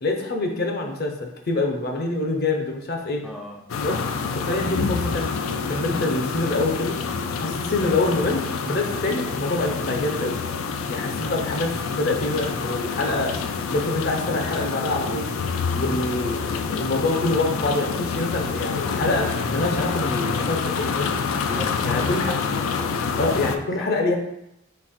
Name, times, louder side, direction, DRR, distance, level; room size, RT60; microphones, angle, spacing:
voice 1, 0.0-3.2 3.8-4.0 4.3-5.3 5.7-7.0 7.4-10.4 10.9-13.3 13.7-15.3 15.7-21.2 21.9-22.3 23.2-24.2, left 2 dB, 50° left, 3 dB, 0.7 m, -25 dB
voice 2, 3.2-3.6 21.4-23.5 23.8-23.9, left 1 dB, ahead, -2 dB, 0.4 m, -37 dB
sound 1, 3.7-23.6, left 5 dB, 85° left, 0.4 m, -27 dB
4.1 x 2.8 x 4.2 m, 0.83 s
head